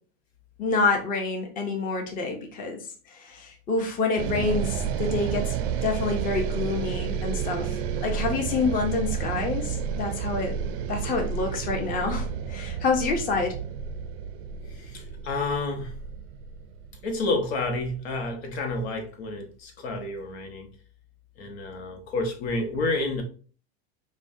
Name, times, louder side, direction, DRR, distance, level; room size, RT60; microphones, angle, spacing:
voice 1, 0.6-2.8 3.1-5.5 5.8-10.5 10.9-13.5, left 4 dB, 25° left, 3 dB, 0.8 m, -27 dB
sound 1, 4.2-18.4, right 7 dB, 70° right, 0.5 m, -31 dB
voice 2, 14.7-15.9 17.0-20.7 21.4-23.2, left 2 dB, 75° left, 4 dB, 1.1 m, -30 dB
5.3 x 2.2 x 2.6 m, 0.40 s
supercardioid pair, 125°, 32 cm